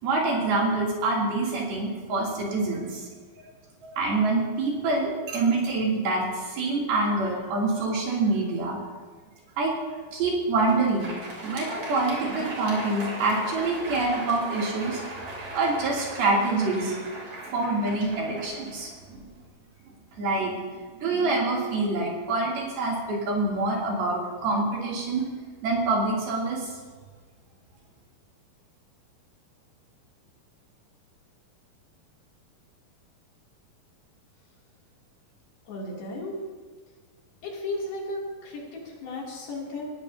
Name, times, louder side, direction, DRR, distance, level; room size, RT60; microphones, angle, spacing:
voice 1, 0.0-3.1 3.8-8.8 9.6-9.7 10.1-15.0 15.5-17.1 17.5-19.2 20.2-25.2 25.6-26.7, right 3 dB, 80° right, -3 dB, 4.9 m, -26 dB
Crowd, 10.4-19.4, right 1 dB, 45° right, 4.1 m, -38 dB
voice 2, 35.7-36.4 37.4-39.9, left 2 dB, 80° left, -3 dB, 4.8 m, -34 dB
20.0 x 14.5 x 2.8 m, 1.5 s
omnidirectional pair, 4.3 m